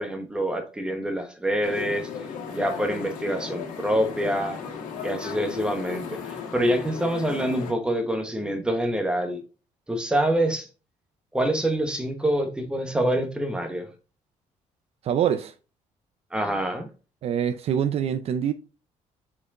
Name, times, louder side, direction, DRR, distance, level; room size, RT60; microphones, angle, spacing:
voice 1, 0.0-2.1 2.5-4.6 5.0-9.4 9.9-10.7 11.3-13.9 16.3-16.9, right 1 dB, 5° right, 1.1 m, -26 dB
sound 1, 1.6-7.7, left 6 dB, 85° left, 1.7 m, -36 dB
voice 2, 15.0-15.5 17.2-18.5, right 9 dB, 50° right, 0.5 m, -24 dB
6.8 x 4.6 x 3.6 m
cardioid pair, 155°, 13 cm